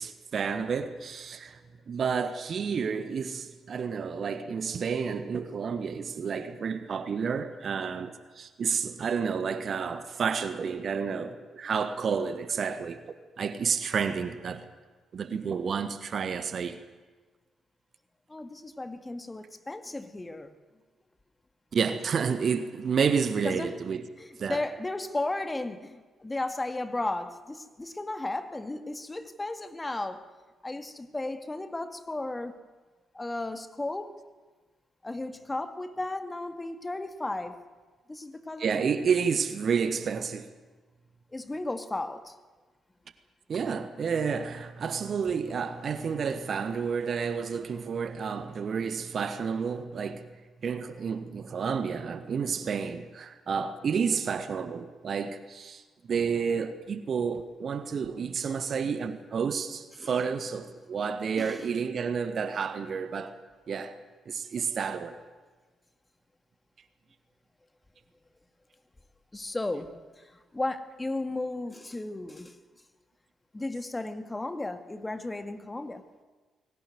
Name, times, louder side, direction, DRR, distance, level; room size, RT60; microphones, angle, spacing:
voice 1, 0.0-1.6 1.9-13.0 13.4-14.7 15.1-16.8 21.7-24.0 24.4-24.6 38.6-40.5 43.5-50.2 50.6-55.8 56.1-63.4 63.7-64.0 64.2-65.1, right 6 dB, 45° right, 1.4 m, -30 dB
voice 2, 18.3-20.5 23.4-23.8 24.2-30.3 30.6-32.6 33.1-34.2 35.0-37.6 38.1-38.8 41.3-42.3 60.0-60.2 61.4-61.7 69.3-69.9 70.2-70.3 70.5-72.6 73.5-76.0, left 2 dB, 20° left, 2.0 m, -34 dB
20.5 x 18.0 x 9.4 m
figure-of-eight pair, 40°, 0 cm